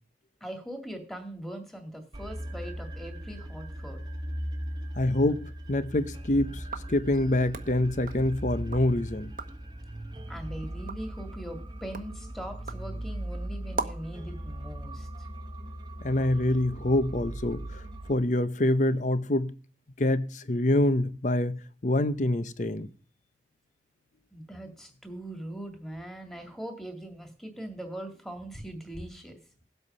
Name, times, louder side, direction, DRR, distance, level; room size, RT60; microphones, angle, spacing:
voice 1, 0.4-4.0 10.3-15.1 24.3-29.3, right 1 dB, ahead, 2.1 m, -41 dB
sound 1, 2.1-18.1, right 1 dB, 25° right, 1.2 m, -39 dB
voice 2, 5.0-6.6 6.9-9.3 16.0-17.8 18.1-19.5 20.0-22.9, left 1 dB, 45° left, 0.8 m, -26 dB
sound 2, 6.6-8.9 9.2-9.7 10.2-14.2, right 3 dB, 50° right, 1.0 m, -41 dB
17.0 x 8.0 x 5.5 m
head